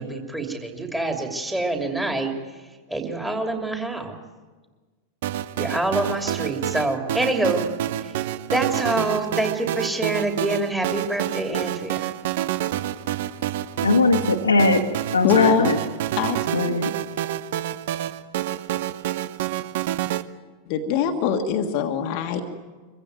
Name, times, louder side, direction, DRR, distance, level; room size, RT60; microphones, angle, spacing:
voice 1, 0.0-2.3 2.9-4.2 5.6-7.6 8.0-8.2 8.5-12.1, right 2 dB, 5° right, 3 dB, 2.9 m, -26 dB
sound 1, 5.2-20.2, right 12 dB, 55° right, 0.8 m, -28 dB
voice 2, 13.8-14.8 15.1-15.8 16.5-16.9, left 3 dB, 75° left, 3 dB, 1.5 m, -20 dB
voice 3, 15.2-15.7 16.2-16.4 20.7-22.4, left 7 dB, 45° left, 5 dB, 1.5 m, -22 dB
23.5 x 15.5 x 9.3 m, 1.3 s
figure-of-eight pair, 90°, 0 cm